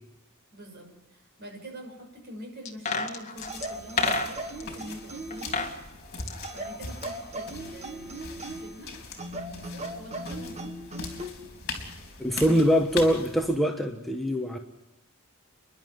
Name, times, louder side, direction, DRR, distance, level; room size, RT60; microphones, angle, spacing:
voice 1, 0.5-5.8 6.5-9.0 9.4-10.8, equal, 50° right, 2 dB, 6.5 m, -45 dB
sound 1, 2.7-4.7 5.3-5.8 6.0-7.4 7.7-7.8, left 3 dB, 30° left, 1.9 m, -31 dB
sound 2, 3.4-13.6, left 3 dB, 50° left, 4.1 m, -41 dB
sound 3, 3.5-5.7 6.4-8.8 9.2-11.4 12.5-12.7, right 1 dB, 30° right, 1.5 m, -38 dB
voice 2, 12.2-14.6, equal, ahead, 2 dB, 1.1 m, -23 dB
30.0 x 11.5 x 9.6 m, 0.99 s
head